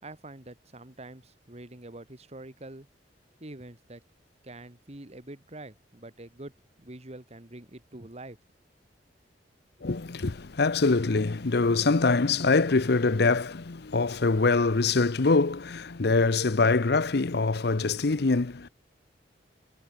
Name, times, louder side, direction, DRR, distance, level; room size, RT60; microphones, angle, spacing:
voice 1, 0.0-2.9 3.4-4.0 4.4-6.5 6.8-8.4, right 2 dB, 40° right, 2.1 m, -45 dB
voice 2, 9.8-18.7, left 3 dB, 65° left, 0.8 m, -24 dB
head